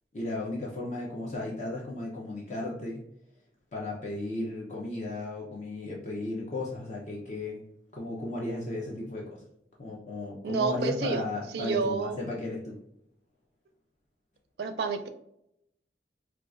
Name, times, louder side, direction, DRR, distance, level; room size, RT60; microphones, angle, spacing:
voice 1, 0.1-3.0 3.7-7.6 7.9-9.4 9.8-12.8, left 2 dB, 40° left, -4 dB, 0.6 m, -35 dB
voice 2, 10.4-11.2 11.5-12.2 14.6-15.1, right 4 dB, 65° right, 6 dB, 0.4 m, -29 dB
4.6 x 2.3 x 2.4 m, 0.78 s
head